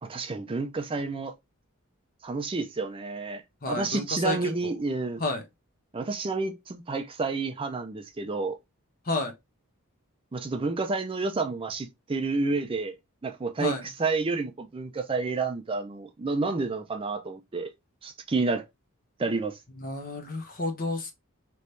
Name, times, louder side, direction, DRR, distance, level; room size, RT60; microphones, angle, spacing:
voice 1, 0.0-1.3 2.2-5.2 5.9-8.6 10.3-13.0 13.2-17.7 18.0-18.6 19.2-19.6, right 3 dB, 25° right, 0.4 m, -30 dB
voice 2, 3.6-4.7 5.2-5.4 9.0-9.3 13.6-13.9 19.8-21.1, left 2 dB, 40° left, 1.0 m, -31 dB
3.3 x 3.1 x 4.0 m
head